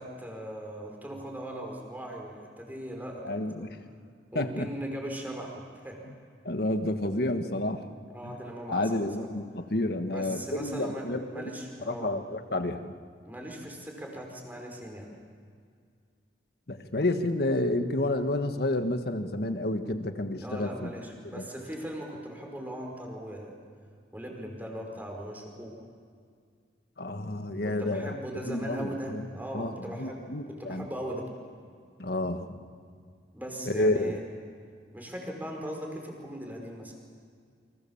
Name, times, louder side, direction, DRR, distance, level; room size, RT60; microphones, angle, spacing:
voice 1, 0.0-3.7 4.3-6.0 8.1-9.3 10.1-12.2 13.3-15.1 20.4-23.6 24.1-25.9 27.6-31.3 33.3-34.2 34.9-36.9, equal, 10° right, 1 dB, 5.1 m, -39 dB
voice 2, 3.2-3.8 4.4-4.7 6.4-7.8 8.2-8.4 8.7-11.5 11.9-12.9 16.7-20.9 21.3-21.4 27.0-28.1 28.5-29.2 29.5-30.9 32.0-32.6 33.7-34.2, left 1 dB, 60° left, 7 dB, 1.6 m, -30 dB
29.0 x 25.5 x 7.3 m, 2.1 s
head